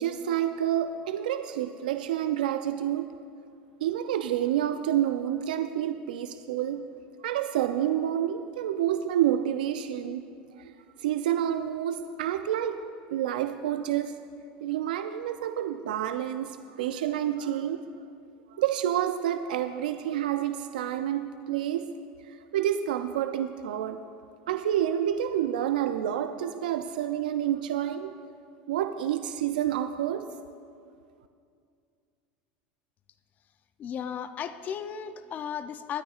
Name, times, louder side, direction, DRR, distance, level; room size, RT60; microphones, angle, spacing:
voice 1, 0.0-3.2 3.8-6.9 7.2-10.2 10.6-10.7 11.0-12.8 13.1-14.2 14.6-17.8 18.5-21.9 22.2-24.0 24.5-28.2 28.7-30.3, right 11 dB, 90° right, 8 dB, 0.4 m, -28 dB
voice 2, 33.8-36.0, left 8 dB, 35° left, 11 dB, 0.5 m, -35 dB
22.5 x 9.2 x 2.4 m, 2.3 s
supercardioid pair, 110°, 5 cm